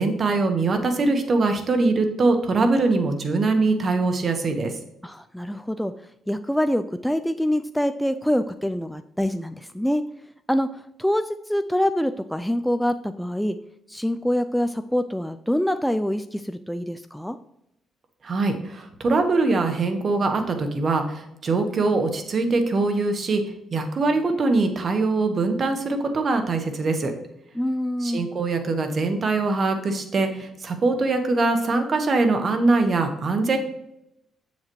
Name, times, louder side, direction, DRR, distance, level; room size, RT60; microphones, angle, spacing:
voice 1, 0.0-4.7 18.2-23.4 23.7-27.1 28.0-33.6, right 3 dB, 45° right, 6 dB, 1.4 m, -22 dB
voice 2, 5.0-5.9 6.3-10.0 10.5-13.6 13.9-17.4 27.6-28.3, equal, ahead, 9 dB, 0.4 m, -25 dB
7.6 x 7.3 x 3.1 m, 0.81 s
cardioid pair, 90°, 0 cm